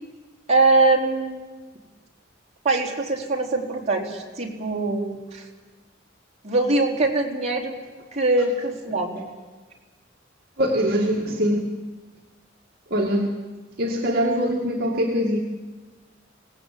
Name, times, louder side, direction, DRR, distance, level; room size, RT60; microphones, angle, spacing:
voice 1, 0.5-1.4 2.6-5.5 6.4-7.8 8.1-9.3, right 2 dB, 35° right, -1 dB, 3.9 m, -22 dB
voice 2, 10.6-11.7 12.9-13.3 13.8-15.4, equal, 55° right, -1 dB, 2.3 m, -22 dB
25.5 x 19.0 x 8.5 m, 1.3 s
head